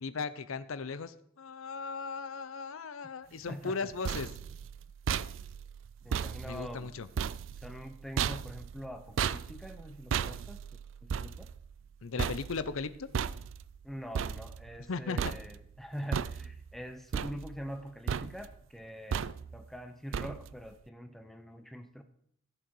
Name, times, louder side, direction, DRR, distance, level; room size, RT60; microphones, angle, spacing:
voice 1, 0.0-4.3 6.4-7.1 12.0-13.1 14.9-15.2, left 4 dB, 90° left, 14 dB, 0.6 m, -37 dB
voice 2, 3.5-3.9 6.0-6.9 7.6-10.6 11.0-11.5 13.8-22.0, equal, ahead, 7 dB, 0.8 m, -44 dB
sound 1, 3.7-14.9 15.2-15.8 16.1-16.8 17.1-17.8 18.1-18.6 19.1-19.7 20.1-20.7, right 7 dB, 70° right, 0.4 m, -36 dB
15.5 x 6.7 x 4.7 m, 0.69 s
head